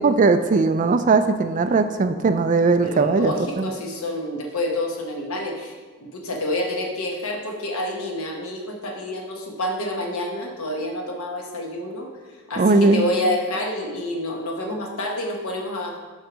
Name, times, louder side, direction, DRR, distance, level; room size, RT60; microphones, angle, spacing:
voice 1, 0.0-3.7 12.6-13.0, right 3 dB, 35° right, 9 dB, 0.4 m, -19 dB
voice 2, 2.8-12.1 12.5-16.0, left 1 dB, 75° left, 2 dB, 1.2 m, -28 dB
6.5 x 4.5 x 6.1 m, 1.5 s
head